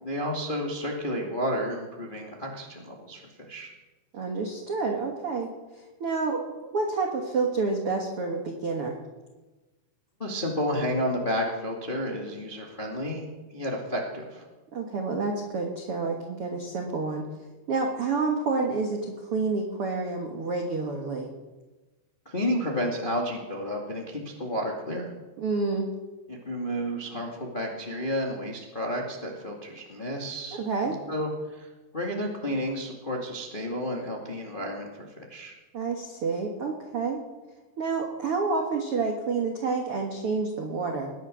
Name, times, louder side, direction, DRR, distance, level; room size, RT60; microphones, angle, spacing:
voice 1, 0.0-3.2 3.5-3.7 10.2-13.2 13.5-14.4 22.2-25.1 26.3-31.7 31.9-35.5, equal, 55° left, -1 dB, 0.5 m, -31 dB
voice 2, 4.1-5.5 6.0-9.0 14.7-17.3 17.7-21.3 25.4-25.9 30.5-31.0 35.7-37.2 37.8-41.1, right 4 dB, 90° right, 2 dB, 1.2 m, -29 dB
19.5 x 10.5 x 6.3 m, 1.2 s
omnidirectional pair, 5.1 m